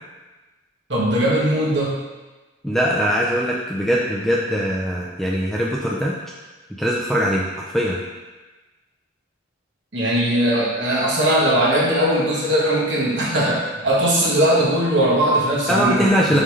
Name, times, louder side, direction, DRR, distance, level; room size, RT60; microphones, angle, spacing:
voice 1, 0.9-2.0 9.9-16.4, right 1 dB, 65° right, -5 dB, 1.6 m, -19 dB
voice 2, 2.6-6.2 6.8-8.0 15.7-16.4, equal, ahead, -4 dB, 0.4 m, -21 dB
5.7 x 5.3 x 3.2 m, 1.2 s
head